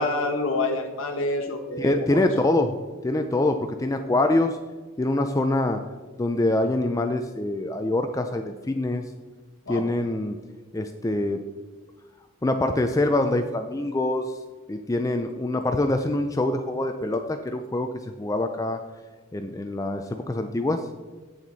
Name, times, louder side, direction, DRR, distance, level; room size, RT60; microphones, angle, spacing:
voice 1, 0.0-2.3 9.7-9.8, left 2 dB, 70° left, 2 dB, 1.0 m, -27 dB
voice 2, 1.8-2.7 3.0-4.6 5.0-5.8 6.2-9.0 9.7-10.4 10.7-11.4 12.4-14.3 14.7-17.9 18.2-18.8 19.3-20.8, left 2 dB, 15° left, 6 dB, 0.4 m, -24 dB
8.0 x 7.2 x 4.0 m, 1.3 s
head